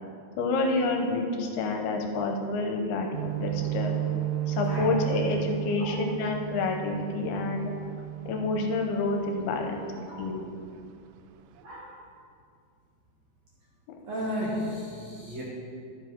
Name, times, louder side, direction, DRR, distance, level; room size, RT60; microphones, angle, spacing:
voice 1, 0.4-3.9 4.5-7.7 8.3-10.5, left 3 dB, 75° left, 3 dB, 2.7 m, -28 dB
sound 1, 3.1-9.6 10.0-10.2 10.6-11.2 11.5-11.6, right 12 dB, 85° right, 2.2 m, -33 dB
voice 2, 11.6-11.9 14.1-15.4, equal, 60° right, -6 dB, 1.9 m, -34 dB
11.5 x 7.8 x 4.5 m, 2.3 s
omnidirectional pair, 4.7 m